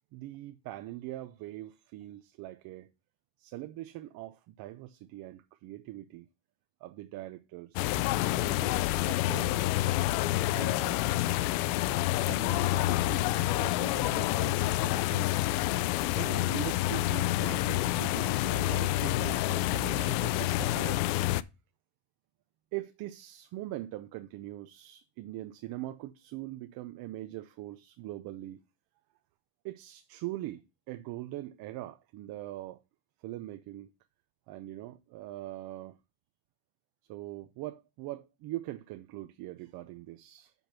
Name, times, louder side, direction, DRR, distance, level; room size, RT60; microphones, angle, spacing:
voice 1, 0.1-2.9 3.4-6.3 6.8-8.8 9.1-9.8 10.5-11.0 12.3-15.4 16.1-21.1 22.7-28.6 29.6-32.8 33.2-33.9 34.5-36.0 37.1-40.5, right 15 dB, 50° right, 0.6 m, -42 dB
sound 1, 7.8-21.4, left 16 dB, 90° left, 0.6 m, -28 dB
5.9 x 5.3 x 6.0 m
cardioid pair, 140°, 45 cm